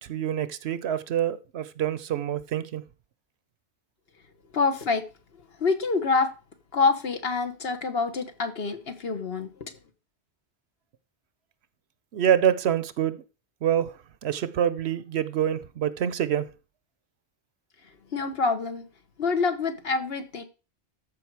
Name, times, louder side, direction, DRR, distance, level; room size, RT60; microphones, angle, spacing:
voice 1, 0.1-2.8 12.1-13.2 13.6-13.9 14.2-16.5, right 10 dB, 70° right, 0.9 m, -26 dB
voice 2, 4.5-5.0 5.6-6.3 6.7-9.7 18.1-18.8 19.2-20.4, left 4 dB, 60° left, 1.4 m, -26 dB
14.0 x 5.2 x 4.7 m
omnidirectional pair, 1.2 m